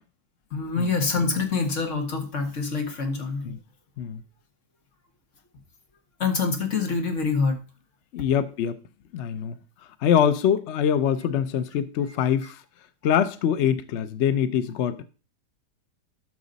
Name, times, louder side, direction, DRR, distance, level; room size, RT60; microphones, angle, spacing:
voice 1, 0.5-3.5 6.2-7.6, left 4 dB, 45° left, 1.8 m, -26 dB
voice 2, 8.1-8.8 9.1-9.6 10.0-12.6 13.0-15.0, left 8 dB, 75° left, 0.6 m, -24 dB
12.0 x 6.2 x 4.0 m
omnidirectional pair, 2.0 m